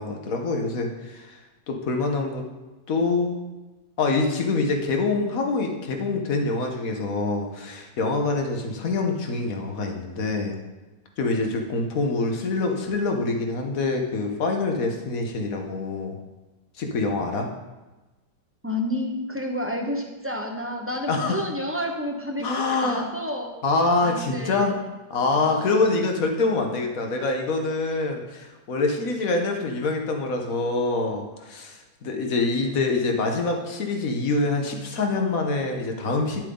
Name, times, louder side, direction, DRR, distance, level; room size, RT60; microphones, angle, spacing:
voice 1, 0.0-1.4 1.7-2.4 2.9-3.4 4.0-10.5 11.2-16.2 16.8-17.5 21.1-21.4 22.4-23.1 23.6-24.8 25.1-36.4, left 3 dB, 55° left, 3 dB, 1.6 m, -25 dB
voice 2, 18.6-23.5 24.0-24.8 25.3-25.9, left 1 dB, 10° right, 1 dB, 0.8 m, -30 dB
11.5 x 7.6 x 3.9 m, 1.1 s
omnidirectional pair, 1.9 m